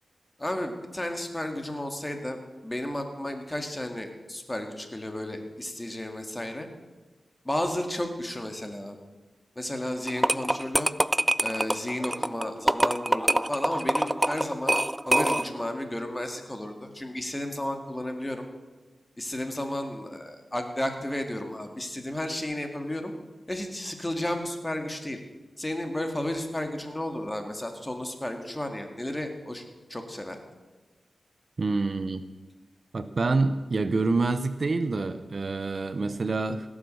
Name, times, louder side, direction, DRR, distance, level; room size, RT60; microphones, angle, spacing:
voice 1, 0.4-6.7 7.5-9.0 9.6-10.9 11.4-14.7 15.1-18.4 19.2-23.1 23.5-25.2 25.6-29.6 29.9-30.4, left 1 dB, 20° left, 5 dB, 1.9 m, -33 dB
sound 1, 10.1-15.7, right 1 dB, 15° right, 0.3 m, -25 dB
voice 2, 31.6-32.2 32.9-36.7, right 3 dB, 55° right, 11 dB, 0.7 m, -27 dB
16.5 x 7.3 x 6.4 m, 1.2 s
cardioid pair, 55°, 0 cm